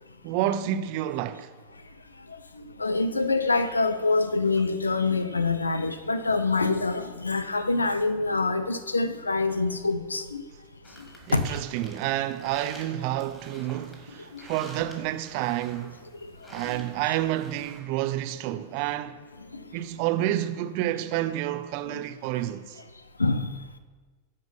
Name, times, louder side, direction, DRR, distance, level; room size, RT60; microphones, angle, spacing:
voice 1, 0.2-1.5 11.3-16.0 16.5-19.2 19.7-22.8, right 13 dB, 45° right, 0.6 m, -29 dB
voice 2, 2.8-10.4 11.0-11.4 14.3-14.4 16.2-16.3 16.6-16.8 17.1-17.2 18.5-18.6 19.5-19.6 21.9-22.0 23.2-23.6, left 3 dB, 80° left, 0.6 m, -26 dB
sound 1, 10.8-17.8, equal, 15° left, 2.9 m, -49 dB
13.5 x 5.3 x 5.4 m
figure-of-eight pair, 90°, 0 cm